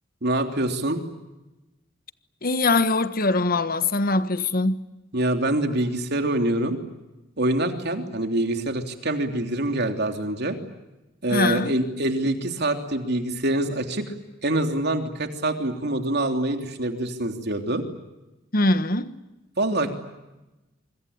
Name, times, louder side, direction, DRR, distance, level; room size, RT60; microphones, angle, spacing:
voice 1, 0.2-1.0 5.1-6.8 7.4-10.6 11.2-14.1 14.4-17.8 19.6-19.9, right 1 dB, 60° right, 3.2 m, -25 dB
voice 2, 2.4-4.9 11.3-11.8 18.5-19.1, left 2 dB, 50° left, 1.4 m, -22 dB
26.5 x 25.0 x 8.8 m
head